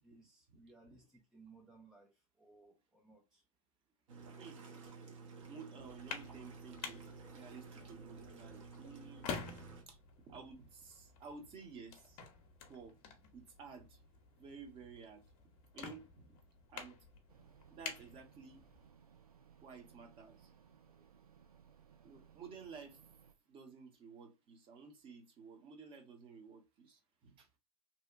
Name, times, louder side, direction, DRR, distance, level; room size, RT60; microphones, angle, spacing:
voice 1, 0.0-3.4, right 3 dB, 5° right, 0.3 m, -62 dB
sound 1, 4.1-9.8, right 4 dB, 60° right, 0.8 m, -53 dB
voice 2, 5.5-7.1 7.3-9.3 9.9-10.0 10.3-12.2 12.7-13.0 13.3-14.0 14.3-15.2 15.7-16.3 16.7-17.0 17.7-18.6 19.6-20.5 22.0-23.0 23.5-27.5, right 5 dB, 30° right, 0.7 m, -53 dB
sound 2, 5.8-18.9, left 5 dB, 35° left, 0.6 m, -50 dB
sound 3, 17.3-23.4, right 7 dB, 80° right, 0.5 m, -63 dB
2.7 x 2.1 x 2.4 m
figure-of-eight pair, 100°, 19 cm